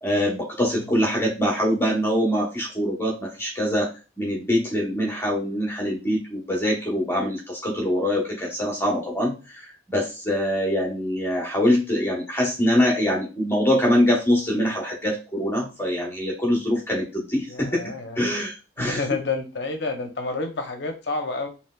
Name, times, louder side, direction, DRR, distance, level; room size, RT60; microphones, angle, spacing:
voice 1, 0.0-3.9 4.2-17.8 18.2-19.0, equal, 10° left, -2 dB, 0.8 m, -24 dB
voice 2, 17.5-18.2 18.8-21.5, left 3 dB, 60° left, 4 dB, 0.6 m, -29 dB
3.2 x 2.9 x 2.2 m, 0.30 s
head